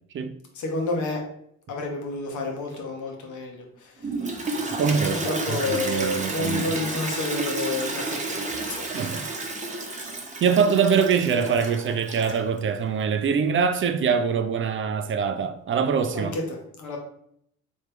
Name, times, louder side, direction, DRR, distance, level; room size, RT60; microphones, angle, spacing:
voice 1, 0.5-1.2 1.7-3.9 5.1-9.0 16.1-17.0, left 2 dB, 80° left, 1.0 m, -30 dB
Toilet flush, 4.0-12.6, right 3 dB, 25° right, 0.8 m, -31 dB
voice 2, 4.8-6.7 8.9-9.3 10.4-16.3, right 6 dB, 45° right, 0.4 m, -24 dB
3.3 x 3.1 x 3.3 m
cardioid pair, 90°, 30 cm